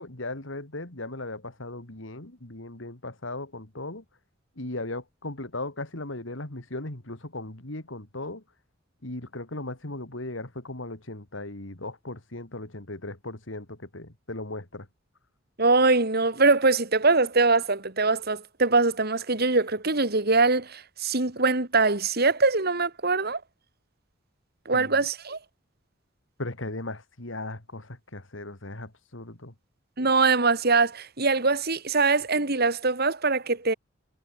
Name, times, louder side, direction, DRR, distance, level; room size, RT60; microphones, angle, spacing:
voice 1, 0.0-4.0 4.6-8.4 9.0-14.9 24.7-25.0 26.4-29.5, left 2 dB, 75° left, 3.1 m, -37 dB
voice 2, 15.6-23.4 24.7-25.4 30.0-33.7, right 3 dB, 50° right, 2.8 m, -23 dB
head